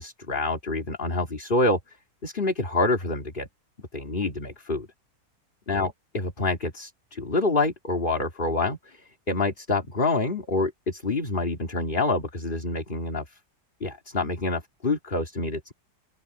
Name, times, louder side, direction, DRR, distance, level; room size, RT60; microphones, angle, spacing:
voice 1, 0.0-1.8 2.2-3.5 3.9-4.9 5.7-9.0 9.3-13.2 13.8-15.7, left 2 dB, 30° left, 2.7 m, -27 dB
open air
omnidirectional pair, 1.9 m